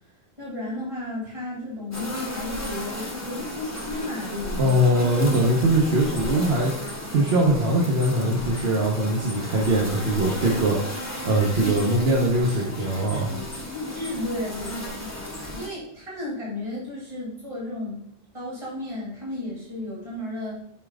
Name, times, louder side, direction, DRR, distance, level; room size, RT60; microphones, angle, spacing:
voice 1, 0.4-5.2 13.7-15.1 15.6-18.0 18.3-20.5, left 1 dB, 30° right, -6 dB, 2.9 m, -33 dB
sound 1, 1.9-15.7, left 1 dB, 15° left, 1.2 m, -34 dB
voice 2, 4.6-6.7 7.1-10.9 11.2-13.3, right 1 dB, 75° right, -3 dB, 1.3 m, -21 dB
8.2 x 5.8 x 2.4 m, 0.71 s
omnidirectional pair, 1.1 m